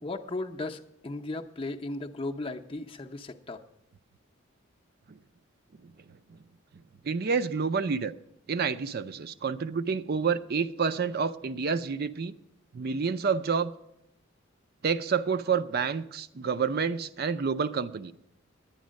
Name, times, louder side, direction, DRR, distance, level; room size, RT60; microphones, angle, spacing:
voice 1, 0.0-3.6, left 2 dB, 25° left, 4 dB, 0.6 m, -36 dB
voice 2, 7.0-8.1 8.5-12.3 12.7-13.7 14.8-18.1, right 5 dB, 50° right, 13 dB, 0.4 m, -29 dB
10.5 x 9.6 x 6.3 m, 0.82 s
head